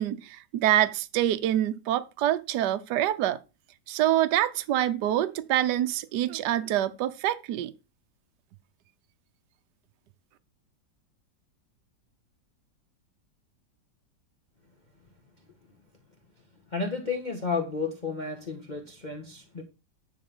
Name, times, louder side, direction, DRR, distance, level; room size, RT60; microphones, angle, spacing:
voice 1, 0.0-3.4 3.9-7.7, right 12 dB, 70° right, 1.3 m, -26 dB
voice 2, 16.7-19.6, left 4 dB, 25° left, 1.4 m, -32 dB
10.5 x 3.7 x 7.1 m
omnidirectional pair, 2.0 m